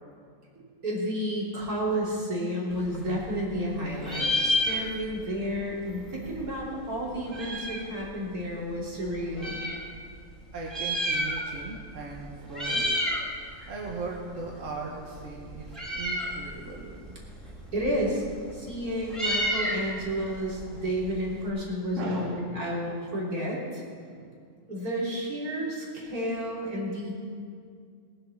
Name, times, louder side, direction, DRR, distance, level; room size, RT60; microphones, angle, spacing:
voice 1, 0.8-9.6 17.7-18.2 18.5-23.9 24.7-27.1, equal, 85° right, -5 dB, 3.7 m, -31 dB
Meow, 2.7-3.7 4.0-5.3 5.6-5.7 5.8-7.9 8.6-9.8 10.5-11.7 12.0-12.2 12.5-13.3 13.6-21.5, left 1 dB, ahead, 2.3 m, -31 dB
voice 2, 10.5-13.2 13.7-17.2 21.9-22.5 24.2-24.3, right 3 dB, 60° right, -1 dB, 1.7 m, -38 dB
19.5 x 7.5 x 7.2 m, 2.2 s
omnidirectional pair, 1.5 m